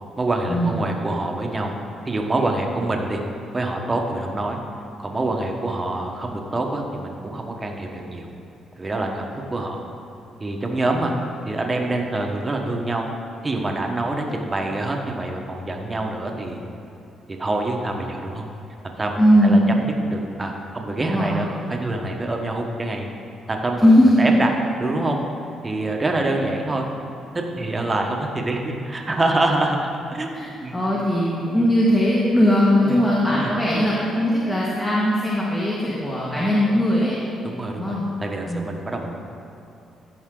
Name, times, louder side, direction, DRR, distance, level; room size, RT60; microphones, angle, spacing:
voice 1, 0.2-1.7 2.0-3.2 3.5-4.6 5.0-8.3 8.8-9.8 10.4-11.1 11.4-13.1 13.4-16.6 17.3-18.4 19.0-19.8 20.1-23.1 23.5-23.9 24.2-24.5 24.8-25.2 25.6-26.9 27.3-30.3 30.6-30.8 32.8-33.0 33.3-33.5 37.4-39.1, right 2 dB, 25° right, 2 dB, 1.2 m, -26 dB
voice 2, 19.2-19.7 21.0-21.4 23.8-24.2 30.3-37.1 37.8-38.1 38.4-38.7, equal, 20° left, -6 dB, 1.7 m, -19 dB
14.5 x 5.6 x 3.8 m, 2.8 s
cardioid pair, 90°, 0 cm